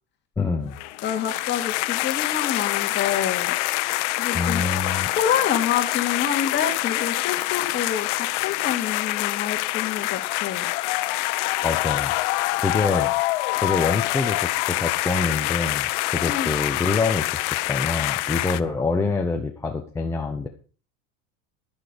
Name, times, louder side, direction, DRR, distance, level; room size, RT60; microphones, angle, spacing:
voice 1, 0.4-0.8 4.3-5.1 11.6-12.1 12.6-17.3 17.7-20.5, left 4 dB, 10° left, 2 dB, 0.9 m, -26 dB
sound 1, 0.7-18.6, left 19 dB, 75° left, 0.9 m, -25 dB
voice 2, 1.0-3.5 4.2-4.7 5.0-10.7 16.3-16.5, left 9 dB, 30° left, 3 dB, 2.3 m, -27 dB
12.0 x 10.5 x 5.2 m, 0.38 s
cardioid pair, 170°, 36 cm